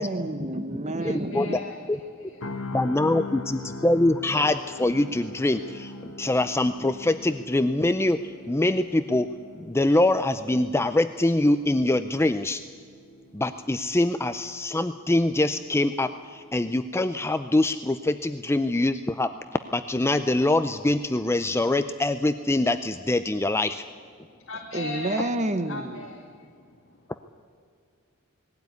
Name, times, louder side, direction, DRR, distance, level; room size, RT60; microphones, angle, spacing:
voice 1, 0.0-1.6 24.7-26.1, right 1 dB, 35° right, 1.2 m, -29 dB
voice 2, 1.0-1.8 2.2-2.8 24.5-25.3 25.7-26.5, left 2 dB, 65° left, 2.3 m, -38 dB
sound 1, 2.4-16.4 16.8-17.0, left 2 dB, 80° left, 1.6 m, -42 dB
voice 3, 2.7-5.9 6.2-8.2 8.5-9.3 9.6-12.6 13.3-19.3 19.7-23.8, left 2 dB, 10° left, 0.4 m, -24 dB
20.0 x 16.5 x 9.5 m
head